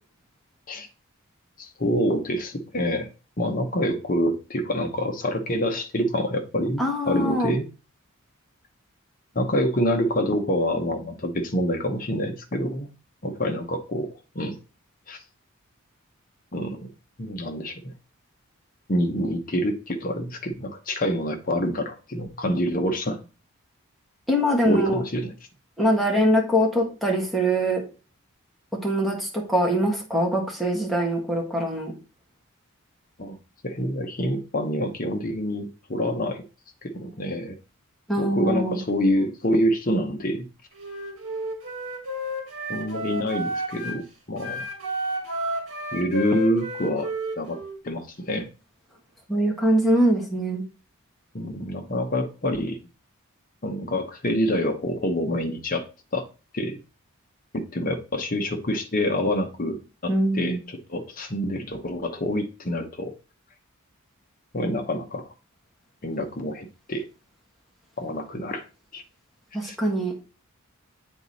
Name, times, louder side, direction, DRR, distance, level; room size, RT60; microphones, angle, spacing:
voice 1, 1.6-3.1 3.4-7.7 9.3-12.9 13.2-14.6 15.1-15.2 16.5-16.9 17.2-17.9 18.9-23.2 24.6-25.3 33.2-33.4 33.6-36.4 36.8-37.5 38.2-40.5 42.7-44.6 45.9-48.5 51.3-52.8 53.6-55.8 56.1-56.3 56.5-56.8 57.5-63.1 64.5-65.3 66.0-67.1 68.0-68.6 68.9-69.0 69.6-69.8, equal, 40° left, 5 dB, 0.9 m, -27 dB
voice 2, 6.8-7.5 24.3-25.0 25.8-27.8 28.8-31.9 38.1-38.8 49.3-50.6 60.1-60.6 69.5-70.1, equal, ahead, -2 dB, 1.6 m, -23 dB
Wind instrument woodwind instrument, 40.7-44.0 44.4-47.8, right 1 dB, 65° right, 2.1 m, -31 dB
8.1 x 4.0 x 4.1 m, 0.33 s
head